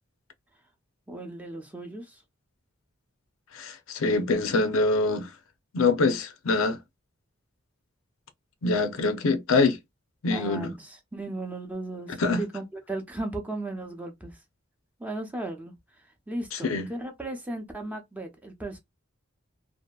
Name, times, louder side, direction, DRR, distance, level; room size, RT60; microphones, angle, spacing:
voice 1, 1.1-2.2 10.3-14.4 15.0-15.7 16.3-18.8, right 2 dB, 10° right, 0.6 m, -36 dB
voice 2, 3.5-5.3 5.7-6.8 8.6-9.8 10.2-10.7 12.2-12.4 16.5-16.9, left 3 dB, 85° left, 0.5 m, -24 dB
2.7 x 2.5 x 2.2 m
head